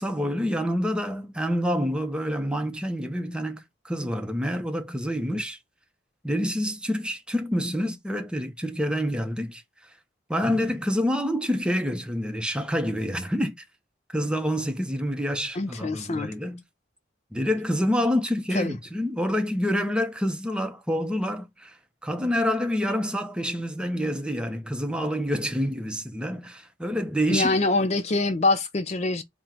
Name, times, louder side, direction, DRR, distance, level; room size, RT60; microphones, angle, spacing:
voice 1, 0.0-5.6 6.2-9.9 10.3-13.6 14.1-16.6 17.3-21.8 22.0-27.5, equal, 5° right, 0.7 m, -27 dB
voice 2, 15.5-16.3 18.5-18.7 27.3-29.2, left 2 dB, 35° left, 0.5 m, -24 dB
4.4 x 2.1 x 3.7 m
head